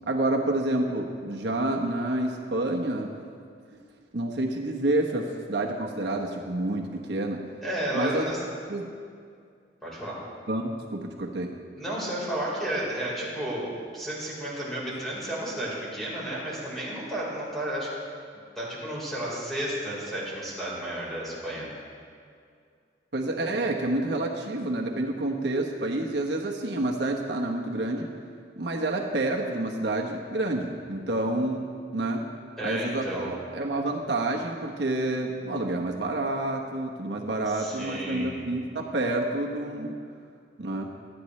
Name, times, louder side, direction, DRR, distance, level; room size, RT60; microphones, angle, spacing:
voice 1, 0.1-3.2 4.1-7.4 7.9-8.2 8.7-8.9 10.5-11.5 23.1-28.1 28.6-31.7 31.9-32.2 32.6-40.0 40.6-40.9, right 2 dB, 75° right, 1 dB, 1.1 m, -28 dB
voice 2, 7.6-8.4 9.8-10.2 11.8-17.9 18.6-21.7 32.6-33.3 37.4-38.4, right 1 dB, ahead, -7 dB, 4.2 m, -32 dB
26.5 x 9.9 x 3.2 m, 2.3 s
head